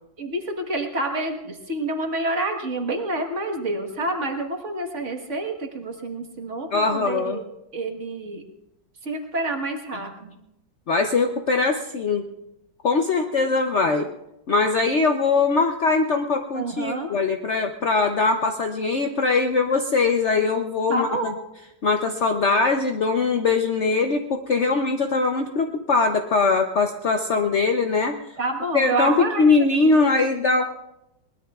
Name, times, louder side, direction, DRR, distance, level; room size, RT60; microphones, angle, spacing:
voice 1, 0.2-8.4 9.0-10.3 16.5-17.1 20.9-21.4 24.7-25.0 28.4-29.5, right 2 dB, 40° right, 3 dB, 1.6 m, -28 dB
voice 2, 6.7-7.4 10.9-12.2 12.8-14.1 14.5-21.3 21.8-28.2 28.7-30.6, left 4 dB, 70° left, 4 dB, 0.6 m, -21 dB
22.5 x 20.0 x 2.4 m, 0.88 s
omnidirectional pair, 2.2 m